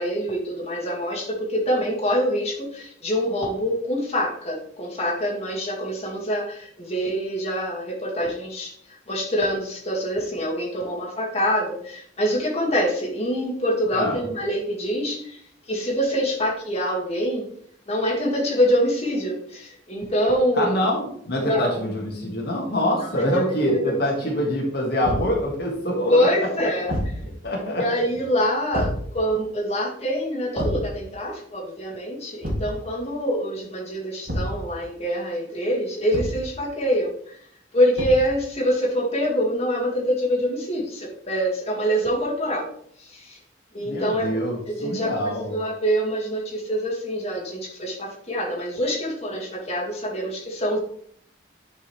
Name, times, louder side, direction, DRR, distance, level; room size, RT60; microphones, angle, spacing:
voice 1, 0.0-17.5 17.9-20.8 21.4-21.8 23.1-23.4 23.7-24.0 24.4-24.5 26.1-26.9 27.8-37.4 37.7-42.7 43.0-43.4 43.7-44.4 44.7-50.8, equal, 35° left, -3 dB, 2.1 m, -25 dB
voice 2, 20.6-26.2 27.4-27.8 43.8-45.5, left 1 dB, 60° left, -2 dB, 1.8 m, -25 dB
Thump thud, 25.0-25.4 26.9-27.2 28.7-29.1 30.6-30.9 32.4-32.8 34.3-34.6 36.1-36.5 38.0-38.3, equal, 55° right, 2.1 m, -28 dB
9.7 x 5.4 x 3.3 m, 0.64 s
head